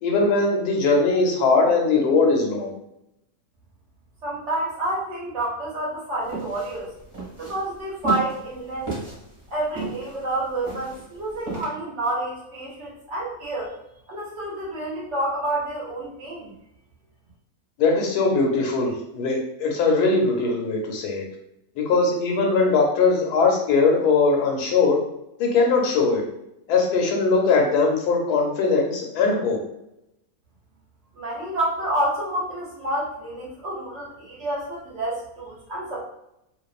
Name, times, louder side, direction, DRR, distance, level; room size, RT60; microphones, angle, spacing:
voice 1, 0.0-2.7 17.8-21.2 21.8-25.0 25.4-26.2 26.7-29.6, left 4 dB, 90° left, 1 dB, 1.2 m, -20 dB
voice 2, 4.2-6.9 7.4-8.9 9.5-13.7 14.1-16.5 31.1-36.0, right 1 dB, 60° right, -5 dB, 0.8 m, -29 dB
sound 1, 6.3-11.7, right 4 dB, 25° right, 0.8 m, -33 dB
2.5 x 2.3 x 2.4 m, 0.83 s
omnidirectional pair, 1.6 m